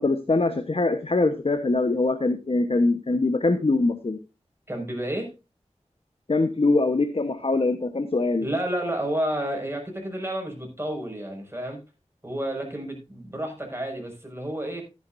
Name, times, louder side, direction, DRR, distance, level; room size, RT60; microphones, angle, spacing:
voice 1, 0.0-4.2 6.3-8.5, left 2 dB, 55° left, 9 dB, 1.1 m, -23 dB
voice 2, 4.7-5.3 8.4-11.8 12.2-14.8, right 1 dB, 20° right, 1 dB, 5.9 m, -30 dB
14.5 x 10.5 x 2.7 m, 0.28 s
wide cardioid pair, 55°, 12 cm